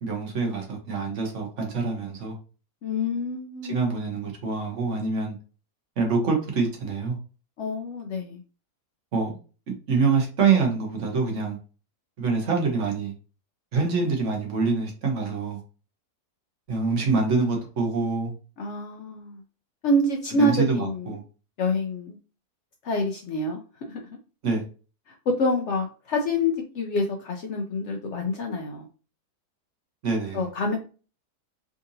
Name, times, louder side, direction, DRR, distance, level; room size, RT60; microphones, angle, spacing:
voice 1, 0.0-2.4 3.6-5.3 6.0-7.2 9.1-9.3 9.7-11.6 12.2-13.1 13.7-15.6 16.7-18.3 20.4-21.2 24.4-24.6 30.0-30.5, right 4 dB, 55° right, 1.2 m, -25 dB
voice 2, 2.8-3.8 7.6-8.4 18.6-19.4 19.8-21.2 21.6-22.2 22.8-23.6 23.9-24.0 25.1-28.9 30.3-30.8, left 1 dB, 70° left, 0.7 m, -27 dB
3.7 x 2.6 x 2.6 m
omnidirectional pair, 1.7 m